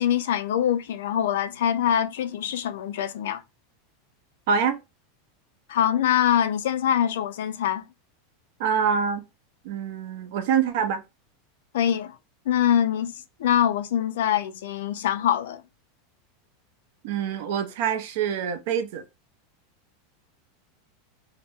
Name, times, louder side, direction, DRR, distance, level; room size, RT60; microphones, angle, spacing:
voice 1, 0.0-3.4 5.7-7.8 11.7-12.2 12.5-13.1 13.4-15.6, left 10 dB, 75° left, 0.4 m, -24 dB
voice 2, 4.5-4.8 8.6-9.2 9.6-11.0 17.0-19.0, right 7 dB, 55° right, 0.6 m, -25 dB
2.8 x 2.1 x 3.4 m
supercardioid pair, 175°, 0 cm